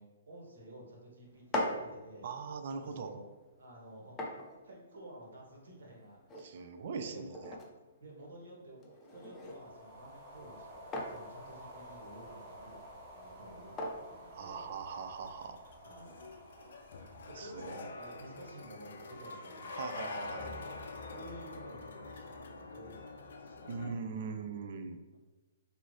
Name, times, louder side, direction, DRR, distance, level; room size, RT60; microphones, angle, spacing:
voice 1, 0.0-2.3 2.6-3.2 3.6-4.4 4.6-6.7 6.9-7.3 7.9-14.7 15.8-16.2 17.3-20.7 21.0-24.3, right 1 dB, 75° right, -2 dB, 1.4 m, -52 dB
sound 1, 1.2-15.1, left 1 dB, 15° left, 0.6 m, -44 dB
voice 2, 2.2-3.1 6.4-7.5 14.3-15.6 17.4-17.7 19.8-20.5 23.7-25.0, right 5 dB, 55° right, 8 dB, 0.4 m, -41 dB
sound 2, 9.2-18.7, equal, 25° right, 1.2 m, -52 dB
sound 3, 14.6-23.9, left 3 dB, 70° left, 0.4 m, -46 dB
4.5 x 2.7 x 2.8 m, 1.2 s
hypercardioid pair, 140°, 0 cm